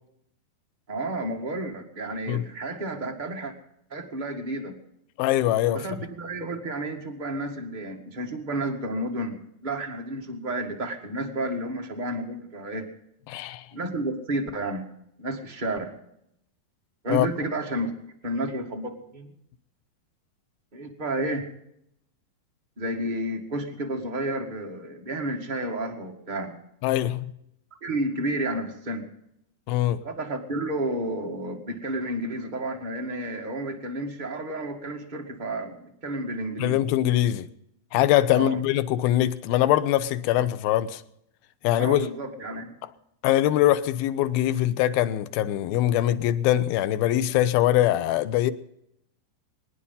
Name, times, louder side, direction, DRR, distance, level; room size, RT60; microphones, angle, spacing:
voice 1, 0.9-3.5 3.9-4.8 5.6-12.9 13.7-14.8 15.2-15.9 17.0-17.9 18.2-19.3 20.7-21.4 22.8-26.6 27.8-29.1 30.0-36.8 38.3-38.6 41.8-42.7, right 1 dB, 25° right, 1.1 m, -31 dB
voice 2, 5.2-5.8 13.3-13.7 17.1-17.3 26.8-27.3 29.7-30.0 36.6-37.5 37.9-41.0 41.6-42.1 43.2-48.5, left 13 dB, 90° left, 2.6 m, -22 dB
23.0 x 9.9 x 5.5 m
omnidirectional pair, 4.2 m